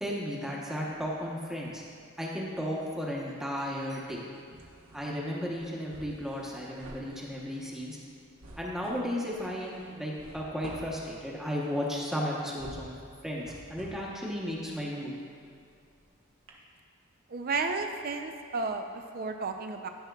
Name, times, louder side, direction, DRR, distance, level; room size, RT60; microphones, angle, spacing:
voice 1, 0.0-1.8 2.2-4.3 4.9-8.0 8.6-12.9 13.2-15.1, equal, 5° right, -4 dB, 0.9 m, -34 dB
sound 1, 0.9-2.0 2.3-16.1 16.5-16.6, right 1 dB, 85° right, 1.1 m, -51 dB
voice 2, 17.3-19.9, right 3 dB, 45° right, 5 dB, 0.4 m, -33 dB
12.5 x 5.7 x 2.3 m, 2.5 s
head